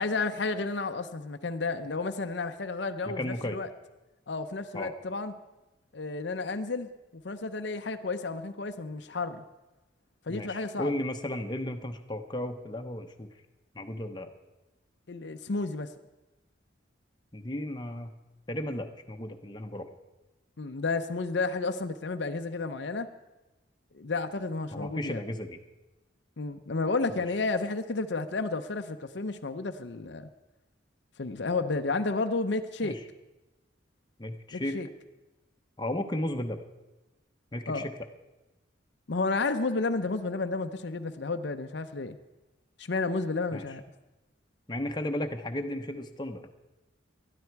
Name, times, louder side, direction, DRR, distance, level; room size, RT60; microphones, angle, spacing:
voice 1, 0.0-3.7 4.3-5.3 5.9-9.4 10.3-10.9 15.1-15.9 20.6-23.1 23.9-25.2 26.4-30.3 31.2-33.0 34.5-34.9 37.7-37.8 39.1-42.2 42.8-43.8, left 3 dB, 60° left, 8 dB, 0.7 m, -31 dB
voice 2, 3.1-3.6 4.7-4.9 10.3-13.3 13.7-14.3 17.3-18.1 18.5-19.9 24.7-25.6 27.1-27.3 32.8-33.0 34.2-34.8 35.8-36.6 37.5-37.9 43.5-43.6 44.7-46.5, left 1 dB, 20° left, 5 dB, 0.9 m, -34 dB
19.5 x 12.5 x 4.7 m, 1.1 s
head